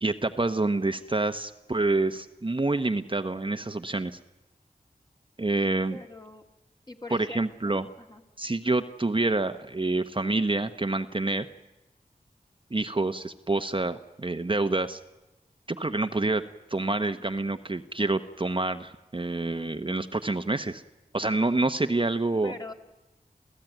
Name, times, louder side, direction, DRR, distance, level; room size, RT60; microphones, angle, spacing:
voice 1, 0.0-4.2 5.4-6.0 7.1-7.9 8.4-11.5 12.7-15.0 15.8-16.4 16.7-20.8 21.1-22.5, right 2 dB, 35° right, 8 dB, 0.9 m, -27 dB
voice 2, 5.9-6.4 6.9-8.2 22.4-22.7, left 2 dB, 25° left, 3 dB, 2.6 m, -42 dB
28.5 x 15.5 x 9.2 m, 1.0 s
wide cardioid pair, 50°, 16 cm